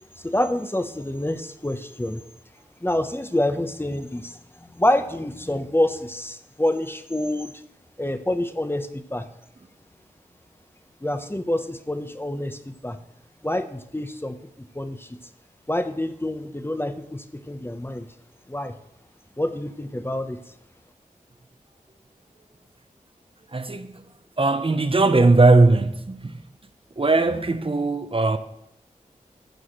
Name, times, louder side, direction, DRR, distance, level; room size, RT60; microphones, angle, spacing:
voice 1, 0.2-2.2 2.8-7.5 8.0-9.3 11.0-13.0 13.4-15.2 15.7-18.1 18.5-18.7 19.4-20.4, left 1 dB, 15° left, 0.9 m, -27 dB
voice 2, 23.5-24.0 24.4-26.3 27.0-28.4, right 3 dB, 40° right, 0.8 m, -19 dB
14.5 x 4.8 x 8.0 m
wide cardioid pair, 55°, 14 cm